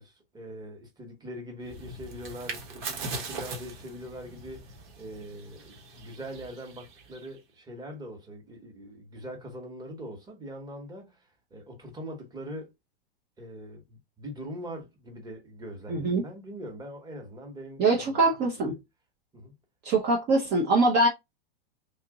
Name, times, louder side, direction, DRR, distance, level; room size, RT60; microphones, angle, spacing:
voice 1, 0.0-12.7 13.4-18.6 19.3-19.5, equal, 15° right, 1.1 m, -42 dB
sound 1, 1.6-7.4, right 3 dB, 55° right, 1.2 m, -40 dB
voice 2, 15.9-16.2 17.8-18.7 19.8-21.1, right 2 dB, 35° right, 0.7 m, -23 dB
3.0 x 2.5 x 3.6 m
hypercardioid pair, 125°, 30 cm